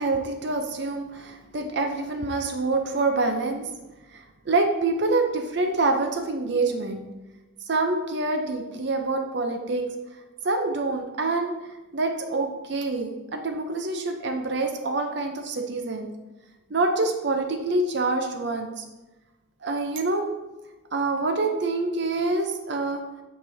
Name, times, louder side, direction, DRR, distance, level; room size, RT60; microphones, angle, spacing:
voice 1, 0.0-3.7 4.5-7.0 7.7-9.9 10.4-11.5 11.9-16.1 16.7-18.9 19.6-20.3 20.9-23.0, right 3 dB, 55° right, 5 dB, 0.5 m, -26 dB
8.6 x 4.8 x 2.7 m, 1.1 s
head